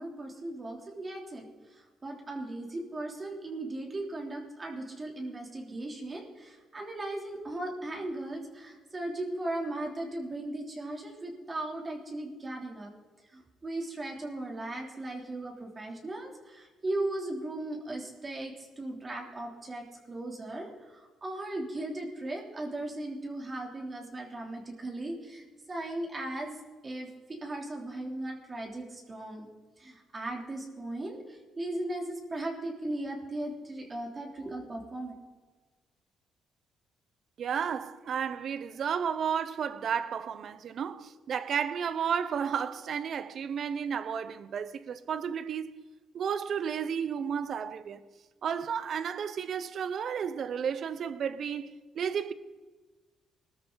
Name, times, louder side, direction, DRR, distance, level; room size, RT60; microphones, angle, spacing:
voice 1, 0.0-1.4 1.7-12.9 13.3-26.5 26.8-29.5 29.8-35.1, right 1 dB, 30° right, 3.3 m, -37 dB
voice 2, 37.4-45.8 46.1-48.0 48.4-52.3, right 7 dB, 60° right, 0.8 m, -32 dB
20.5 x 13.5 x 4.0 m
cardioid pair, 90°, 0 cm